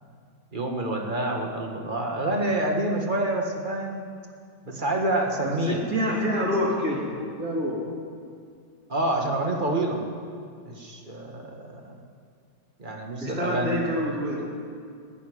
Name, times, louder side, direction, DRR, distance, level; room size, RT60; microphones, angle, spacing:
voice 1, 0.5-4.0 4.6-5.8 8.9-10.0 10.6-12.0 12.8-13.8, right 1 dB, 30° right, 1 dB, 1.7 m, -27 dB
voice 2, 5.4-7.1 7.4-7.8 13.2-14.5, equal, 55° right, -4 dB, 3.7 m, -27 dB
17.5 x 7.1 x 9.8 m, 2.2 s
omnidirectional pair, 1.8 m